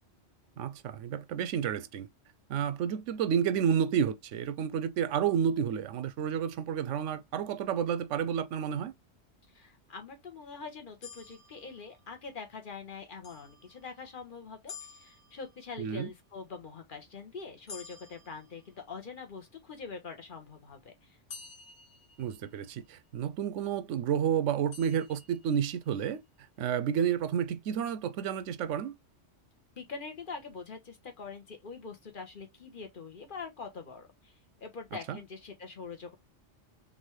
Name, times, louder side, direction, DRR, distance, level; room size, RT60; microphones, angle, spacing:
voice 1, 0.6-2.1 2.5-8.9 15.8-16.1 22.2-26.2 26.6-28.9 35.1-35.2, right 8 dB, 80° right, 0.9 m, -30 dB
voice 2, 9.5-21.2 29.8-36.1, left 5 dB, 45° left, 1.3 m, -44 dB
sound 1, 11.0-12.4 13.2-14.2 14.7-15.9 17.7-19.2 21.3-22.9 24.7-25.9, left 5 dB, 70° left, 1.8 m, -51 dB
4.0 x 3.6 x 3.2 m
omnidirectional pair, 1.3 m